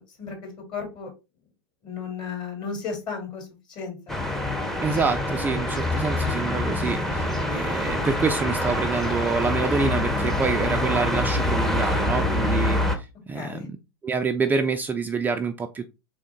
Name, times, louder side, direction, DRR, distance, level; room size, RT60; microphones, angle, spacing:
voice 1, 0.2-1.1 1.8-4.2 13.3-13.7, left 5 dB, 35° left, 2 dB, 2.5 m, -34 dB
sound 1, 4.1-13.0, left 1 dB, 5° left, 0.7 m, -25 dB
voice 2, 4.8-13.6 14.0-15.9, right 5 dB, 15° right, 6 dB, 0.4 m, -27 dB
3.7 x 3.6 x 3.6 m, 0.27 s
hypercardioid pair, 100°, 13 cm